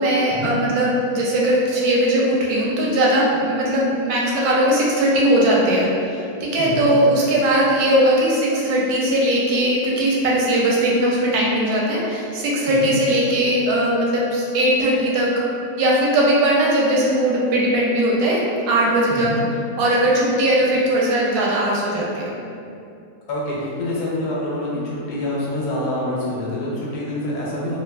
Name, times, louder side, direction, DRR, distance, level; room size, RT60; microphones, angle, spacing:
voice 1, 0.0-15.3 15.8-18.4 18.7-19.3 19.8-22.4, right 1 dB, 80° right, -4 dB, 1.1 m, -19 dB
voice 2, 6.6-6.9 12.7-12.9 19.1-19.4 23.3-27.8, left 1 dB, 90° left, -5 dB, 1.2 m, -26 dB
2.8 x 2.3 x 2.2 m, 2.5 s
omnidirectional pair, 1.6 m